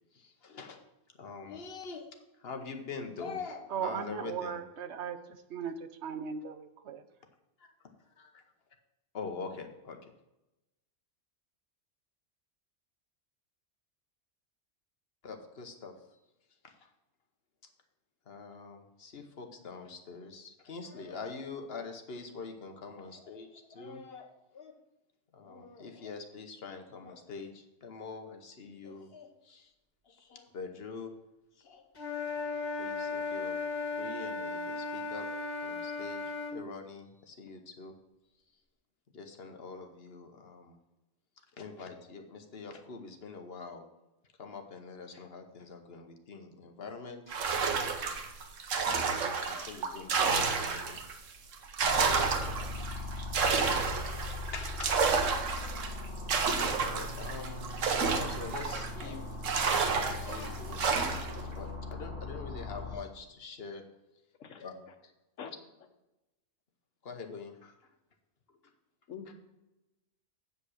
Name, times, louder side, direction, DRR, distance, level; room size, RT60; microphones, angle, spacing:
voice 1, 0.1-0.8 1.1-4.6 7.6-7.7 8.2-8.4 9.1-10.1 15.2-15.9 16.6-16.7 18.3-24.7 25.3-29.7 30.0-31.1 31.6-31.8 32.8-33.6 34.0-35.3 35.6-37.9 39.1-40.8 41.6-43.8 44.4-47.2 48.9-49.0 49.5-51.0 53.4-55.0 56.3-63.8 64.6-65.1 67.0-67.9 69.3-69.4, left 4 dB, 55° left, 5 dB, 1.2 m, -45 dB
voice 2, 3.7-7.0, right 7 dB, 65° right, 10 dB, 1.0 m, -38 dB
Wind instrument woodwind instrument, 32.0-36.6, left 4 dB, 35° left, 1.5 m, -36 dB
sound 1, 47.3-51.1 51.5-59.0 59.4-61.4, right 5 dB, 90° right, 1.3 m, -30 dB
sound 2, 51.8-63.0, left 2 dB, 35° right, 3.5 m, -40 dB
voice 3, 64.4-64.6 65.4-65.6 69.1-69.3, left 7 dB, 85° left, 6 dB, 1.3 m, -43 dB
8.4 x 5.3 x 6.3 m, 0.98 s
omnidirectional pair, 1.3 m